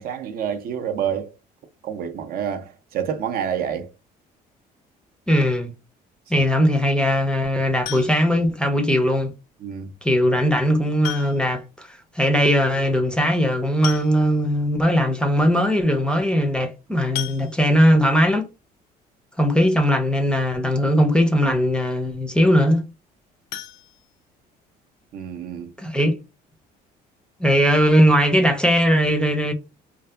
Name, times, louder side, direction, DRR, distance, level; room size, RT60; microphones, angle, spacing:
voice 1, 0.0-1.3 1.8-3.9 6.3-6.4 9.6-9.9 25.1-25.7, right 8 dB, 60° right, 0.5 m, -28 dB
voice 2, 5.3-5.7 6.3-9.3 10.0-18.5 19.4-22.8 25.8-26.2 27.4-29.5, equal, 5° left, 0.4 m, -19 dB
sound 1, 7.9-8.5 10.0-10.1 11.0-11.7 12.0-12.1 12.3-12.4 13.4-13.5 13.8-14.6 15.1-15.2 15.5-15.7 17.2-18.0 23.5-24.7 25.1-25.2 25.6-25.7 26.0-26.1, left 12 dB, 75° left, 0.4 m, -35 dB
2.6 x 2.4 x 2.2 m
cardioid pair, 110°, 17 cm